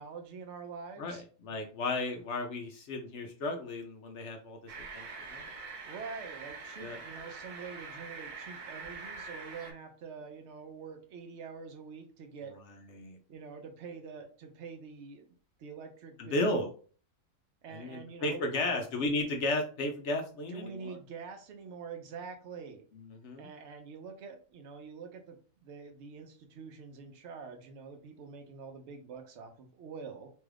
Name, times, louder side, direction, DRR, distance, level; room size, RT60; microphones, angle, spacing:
voice 1, 0.0-1.2 5.9-12.5 13.3-15.2 15.6-16.7 17.6-18.8 20.5-22.8 23.4-30.3, right 5 dB, 60° right, 5 dB, 0.8 m, -46 dB
voice 2, 1.0-5.5 6.8-7.0 12.9-13.2 16.2-16.7 17.7-21.0 22.9-23.5, left 2 dB, 65° left, 3 dB, 0.7 m, -34 dB
sound 1, 4.7-9.7, right 4 dB, 75° right, 1.3 m, -44 dB
3.1 x 2.4 x 3.2 m, 0.40 s
omnidirectional pair, 1.6 m